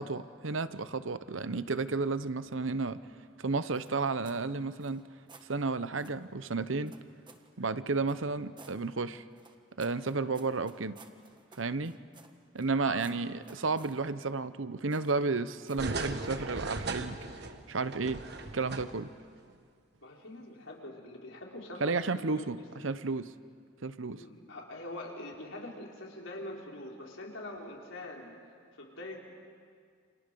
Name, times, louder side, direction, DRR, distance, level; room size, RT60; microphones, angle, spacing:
voice 1, 0.0-3.0 3.4-5.0 5.4-6.9 7.6-9.2 9.8-11.0 11.6-11.9 12.5-17.2 17.7-18.2 18.5-19.1 21.8-22.6 22.8-23.3 23.8-24.2, right 3 dB, 80° right, 13 dB, 0.9 m, -32 dB
sound 1, 3.7-4.4 4.8-5.5 6.0-6.2 6.9-7.5 8.1-8.8 9.3-12.7 13.0-14.0 14.9-15.3 15.7-15.9, right 4 dB, 25° right, 1.5 m, -56 dB
sound 2, 15.8-19.2 19.5-19.6, right 3 dB, 55° right, 1.6 m, -38 dB
voice 2, 20.0-22.7 24.1-28.4 28.8-29.2, left 1 dB, 80° left, -1 dB, 4.7 m, -44 dB
29.5 x 27.5 x 6.9 m, 2.1 s
head